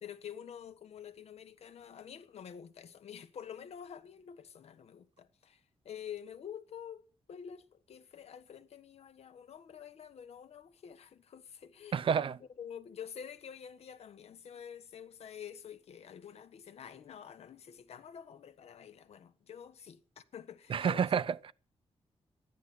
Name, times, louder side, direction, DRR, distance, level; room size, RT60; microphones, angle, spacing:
voice 1, 0.0-12.1 12.4-21.0, left 8 dB, 80° left, 1.3 m, -48 dB
voice 2, 11.9-12.4 20.7-21.5, right 7 dB, 55° right, 0.6 m, -29 dB
12.5 x 10.0 x 8.0 m
wide cardioid pair, 130°, 11 cm